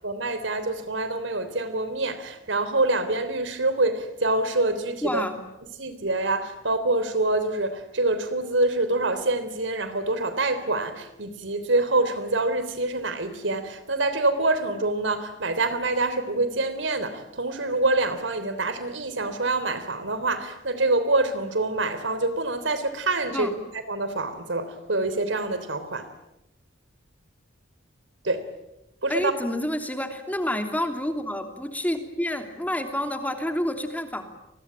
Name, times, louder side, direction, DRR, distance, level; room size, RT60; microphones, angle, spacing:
voice 1, 0.0-5.3 5.8-23.5 23.9-26.1 28.2-28.5 29.0-29.3, right 2 dB, 80° right, 3.6 m, -26 dB
voice 2, 5.0-5.4 23.3-23.5 29.1-34.2, left 1 dB, 10° left, 3.0 m, -28 dB
29.5 x 21.5 x 9.0 m
head